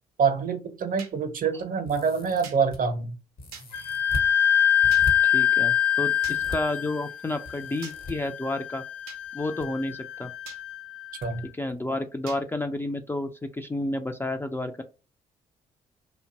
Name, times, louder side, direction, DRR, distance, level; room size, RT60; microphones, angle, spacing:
voice 1, 0.2-3.2 11.2-11.4, right 5 dB, 50° right, 9 dB, 0.7 m, -26 dB
sound 1, 1.0-1.1 2.4-2.6 3.5-3.7 4.9-5.1 6.2-6.4 7.8-8.0 9.1-9.2 10.5-10.6 12.3-12.4, right 7 dB, 85° right, 0.4 m, -42 dB
sound 2, 1.8-2.8 3.4-4.3 4.8-5.1 6.2-6.6 7.4-8.1 9.3-9.7 9.9-10.0 11.2-11.3 11.7-11.8, left 1 dB, 55° left, 0.9 m, -37 dB
Wind instrument woodwind instrument, 3.7-11.2, left 9 dB, 75° left, 0.5 m, -25 dB
voice 2, 5.2-8.8 9.3-10.3 11.5-14.8, left 2 dB, 10° left, 6 dB, 0.3 m, -31 dB
2.5 x 2.1 x 2.7 m, 0.32 s
hypercardioid pair, 45°, 19 cm